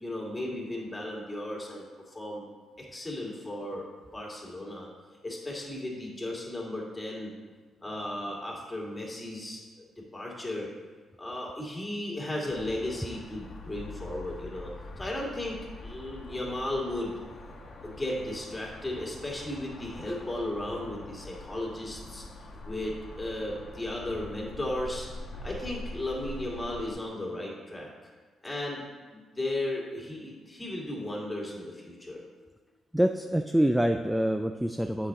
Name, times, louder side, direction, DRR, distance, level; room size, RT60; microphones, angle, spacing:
voice 1, 0.0-2.4 2.8-3.9 4.1-4.9 5.2-7.3 7.8-9.6 10.1-10.7 11.2-15.6 15.8-17.2 17.8-22.2 22.6-25.1 25.4-28.1 28.4-28.8 29.1-32.2, left 1 dB, 15° left, -3 dB, 2.2 m, -35 dB
sound 1, 12.5-26.9, left 2 dB, 50° left, 1.2 m, -44 dB
voice 2, 32.9-35.1, equal, 5° right, 6 dB, 0.3 m, -26 dB
7.9 x 5.9 x 3.7 m, 1.4 s
cardioid pair, 75°, 0 cm